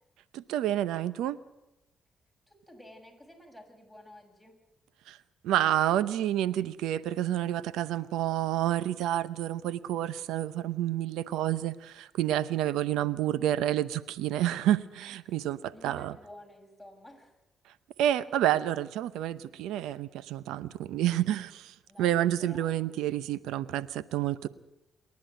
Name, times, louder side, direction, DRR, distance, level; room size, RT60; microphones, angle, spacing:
voice 1, 0.3-1.4 5.1-5.2 5.4-16.1 18.0-24.5, right 12 dB, 85° right, 17 dB, 0.7 m, -29 dB
voice 2, 2.5-4.6 15.3-17.4 21.9-23.0, left 1 dB, ahead, 3 dB, 7.0 m, -52 dB
27.5 x 11.0 x 9.2 m, 0.94 s
supercardioid pair, 60°, 0 cm